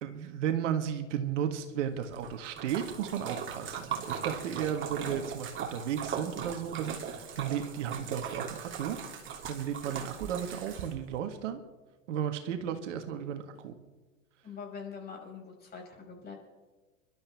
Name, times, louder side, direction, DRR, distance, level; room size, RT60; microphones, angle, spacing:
voice 1, 0.0-9.0 9.5-11.6 12.1-13.7, right 9 dB, 65° right, 7 dB, 1.7 m, -34 dB
Splash splatter, 2.0-11.1, right 7 dB, 30° right, 2.9 m, -39 dB
voice 2, 14.4-16.4, left 5 dB, 25° left, 0 dB, 5.6 m, -44 dB
28.0 x 12.5 x 3.5 m, 1.2 s
hypercardioid pair, 95°, 40 cm